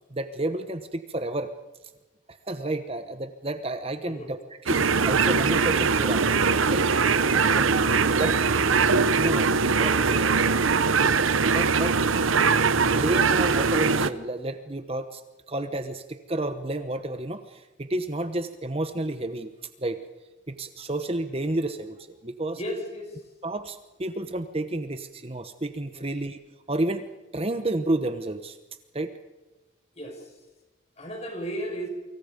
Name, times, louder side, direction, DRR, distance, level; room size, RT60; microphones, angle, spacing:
voice 1, 0.1-1.5 2.3-6.3 6.7-6.9 7.5-8.4 9.1-10.5 11.4-12.0 12.7-15.2 15.5-19.5 19.8-20.0 20.5-22.6 23.4-26.4 26.7-27.1 27.3-28.6 28.9-29.1, right 1 dB, 30° right, 9 dB, 1.0 m, -31 dB
sound 1, 4.7-14.1, right 5 dB, 80° right, 0.9 m, -22 dB
voice 2, 22.5-23.2 26.0-26.1 29.9-30.4 31.0-31.9, equal, 30° left, 3 dB, 5.8 m, -35 dB
29.5 x 25.0 x 5.2 m, 1.1 s
head